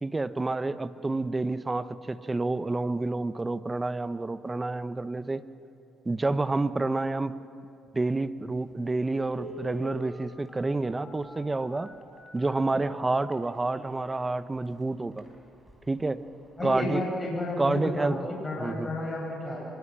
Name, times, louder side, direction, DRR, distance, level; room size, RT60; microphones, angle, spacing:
voice 1, 0.0-5.4 6.0-7.4 7.9-11.9 12.3-15.2 15.9-16.2 16.6-17.1 17.6-18.2 18.6-18.9, right 2 dB, 20° right, 13 dB, 1.0 m, -29 dB
Telephone, 8.5-8.6 9.3-14.1 14.7-14.8 15.1-15.3 15.7-16.0 16.3-16.4, right 1 dB, 5° left, 4.5 m, -46 dB
voice 2, 16.6-19.7, left 2 dB, 25° left, -3 dB, 7.0 m, -32 dB
24.5 x 21.0 x 6.2 m, 2.5 s
supercardioid pair, 60°, 0 cm